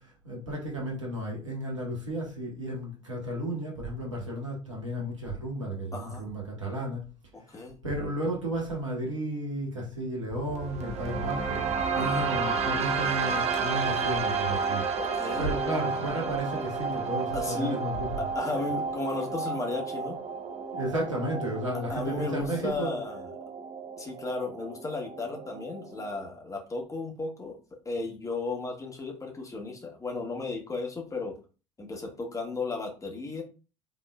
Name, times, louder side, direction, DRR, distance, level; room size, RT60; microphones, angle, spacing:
voice 1, 0.0-7.0 7.5-14.8 15.4-18.1 20.7-22.9, right 1 dB, 85° right, 1.3 m, -33 dB
voice 2, 5.9-6.3 7.3-7.7 12.0-12.3 15.0-15.5 17.3-17.8 18.2-20.2 21.9-23.2 24.0-27.6 27.9-31.4 31.8-33.4, left 3 dB, 20° left, 1.7 m, -34 dB
sound 1, 10.3-26.3, right 5 dB, 40° right, 0.9 m, -32 dB
5.5 x 3.6 x 2.4 m
figure-of-eight pair, 60°, 16 cm